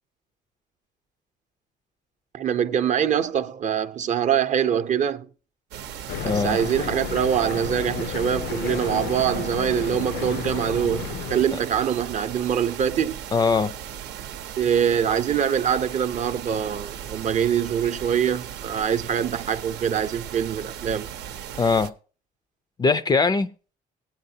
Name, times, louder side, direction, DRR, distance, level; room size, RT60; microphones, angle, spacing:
voice 1, 2.3-5.3 6.2-13.3 14.6-21.1, right 8 dB, 45° right, 0.6 m, -24 dB
sound 1, 5.7-21.9, right 9 dB, 85° right, 0.7 m, -37 dB
sound 2, 6.1-11.4, left 8 dB, 70° left, 0.6 m, -32 dB
voice 2, 6.2-6.6 11.5-11.6 13.3-13.7 21.6-21.9 22.8-23.5, left 4 dB, 25° left, 0.4 m, -21 dB
18.0 x 8.6 x 2.7 m
cardioid pair, 110°, 17 cm